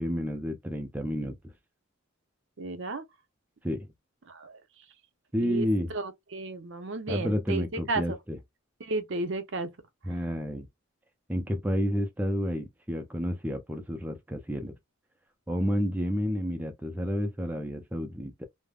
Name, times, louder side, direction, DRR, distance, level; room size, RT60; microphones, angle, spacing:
voice 1, 0.0-1.5 3.6-3.9 5.3-5.9 7.1-8.4 10.0-10.7 11.3-14.8 15.5-18.5, equal, 10° right, 0.4 m, -30 dB
voice 2, 2.6-3.0 4.3-4.6 5.4-8.2 8.8-9.7, right 2 dB, 60° right, 0.6 m, -33 dB
3.3 x 2.1 x 2.3 m
head